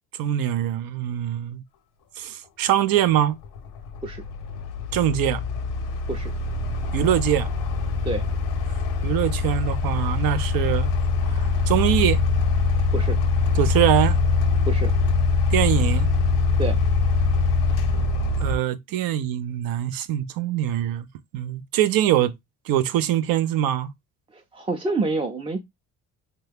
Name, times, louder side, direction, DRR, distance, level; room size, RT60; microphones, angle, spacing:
voice 1, 0.2-1.6 2.2-3.4 4.9-5.4 6.9-7.5 9.0-10.9 11.3-12.2 13.6-14.2 15.5-16.1 18.4-21.1 21.3-22.3 22.7-23.9, right 11 dB, 75° right, 0.5 m, -23 dB
sound 1, 2.8-2.9 3.4-18.6, left 4 dB, 85° left, 0.7 m, -23 dB
voice 2, 24.3-25.6, right 3 dB, 15° right, 0.5 m, -27 dB
2.8 x 2.2 x 3.3 m
supercardioid pair, 65°, 36 cm